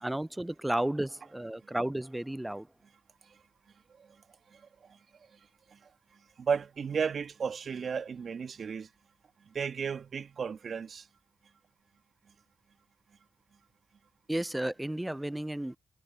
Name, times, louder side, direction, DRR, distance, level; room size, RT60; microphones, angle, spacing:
voice 1, 0.0-2.7 14.3-15.8, right 1 dB, 10° right, 0.5 m, -33 dB
voice 2, 4.5-5.0 5.3-5.4 5.7-5.8 6.4-8.9 9.5-11.1, right 6 dB, 55° right, 1.8 m, -34 dB
hypercardioid pair, 45°, 0 cm